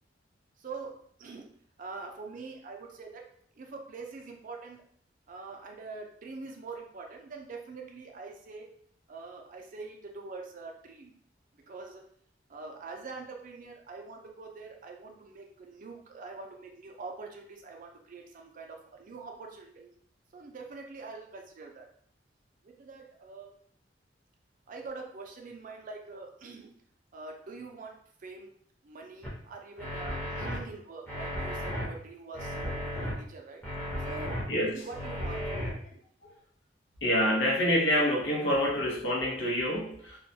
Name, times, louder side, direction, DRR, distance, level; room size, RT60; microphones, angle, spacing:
voice 1, 0.6-3.2 3.6-4.8 5.3-8.7 9.1-11.1 11.7-12.0 12.5-19.9 20.3-21.9 22.6-23.6 24.7-26.8 27.1-27.9 28.2-28.5 28.8-33.6 34.0-36.0, right 4 dB, 45° right, 2 dB, 0.4 m, -44 dB
sound 1, 29.2-29.3 29.8-30.6 31.1-31.8 32.3-33.1 33.6-34.4 34.9-35.7, equal, 10° left, 0.6 m, -34 dB
voice 2, 34.5-34.9 37.0-40.2, equal, 80° left, -1 dB, 0.7 m, -27 dB
2.3 x 2.1 x 2.6 m, 0.62 s
head